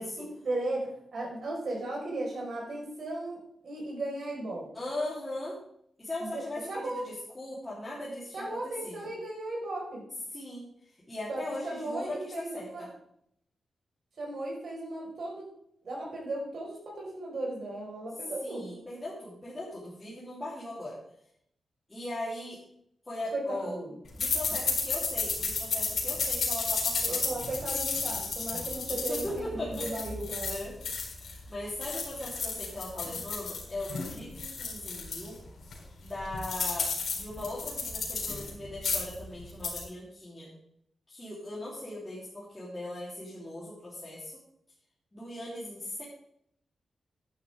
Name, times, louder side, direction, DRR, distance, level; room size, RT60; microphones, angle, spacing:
voice 1, 0.0-4.7 6.2-7.1 8.3-10.0 11.3-12.9 14.2-15.5 15.8-18.8 23.3-24.0 27.0-30.6, right 2 dB, 55° right, -1 dB, 5.1 m, -36 dB
voice 2, 4.7-5.6 6.0-9.0 10.3-10.7 11.1-12.9 18.4-21.0 21.9-22.6 23.1-23.8 24.1-27.2 28.9-29.9 30.4-35.4 36.0-40.5 41.1-44.4 45.1-46.0, left 1 dB, 15° left, -9 dB, 3.7 m, -39 dB
sound 1, 24.2-31.4 31.7-35.3 35.7-35.8 36.1-38.5 38.8-39.2 39.5-39.8, left 4 dB, 70° left, 4.7 m, -32 dB
11.0 x 11.0 x 3.7 m, 0.70 s
wide cardioid pair, 140°, 0 cm